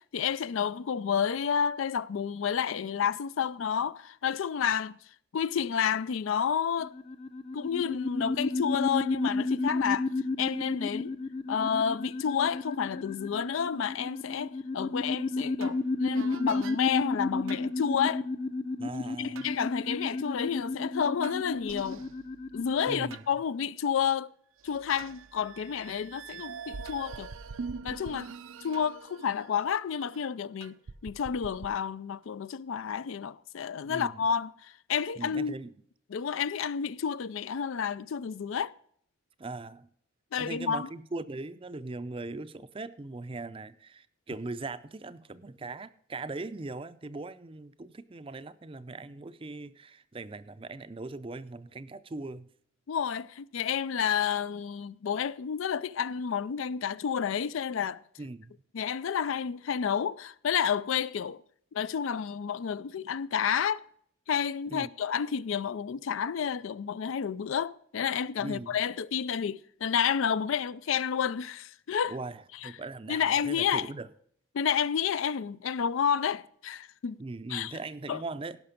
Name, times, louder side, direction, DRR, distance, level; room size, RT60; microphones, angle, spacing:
voice 1, 0.1-5.0 5.3-6.9 7.5-10.1 10.4-11.1 11.5-18.3 19.0-22.0 22.5-24.3 24.6-27.3 27.8-28.3 28.6-30.8 31.0-35.5 36.1-38.7 40.3-40.9 52.9-58.0 58.7-61.4 61.7-63.8 64.3-72.2 72.6-72.7 73.1-73.9 74.5-77.2 77.5-77.7 78.1-78.2, left 7 dB, 75° left, 0.4 m, -30 dB
sound 1, 6.8-23.1, left 3 dB, 30° left, 0.6 m, -32 dB
sound 2, 15.6-15.8 16.1-16.8 17.5-17.7 19.4-19.5 21.2-23.3 23.9-24.0 24.6-30.3 30.6-31.7, right 5 dB, 75° right, 0.5 m, -44 dB
voice 2, 18.8-19.5 22.9-23.3 33.9-34.2 35.2-35.7 39.4-39.9 40.4-52.5 58.2-58.6 64.7-64.9 68.4-68.8 72.1-74.1 77.2-78.6, right 3 dB, 25° right, 0.5 m, -40 dB
17.0 x 5.9 x 5.1 m
head